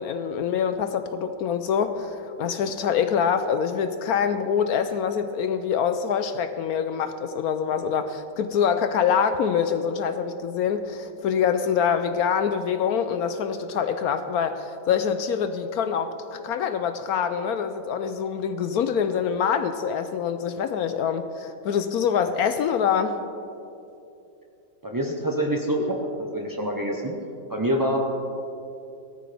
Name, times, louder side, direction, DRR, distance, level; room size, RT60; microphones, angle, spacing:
voice 1, 0.0-23.2, left 7 dB, 70° left, 9 dB, 0.9 m, -25 dB
voice 2, 24.8-25.8 26.2-27.1 27.5-28.0, equal, 35° right, 0 dB, 0.3 m, -26 dB
17.0 x 13.5 x 3.4 m, 2.8 s
omnidirectional pair, 1.9 m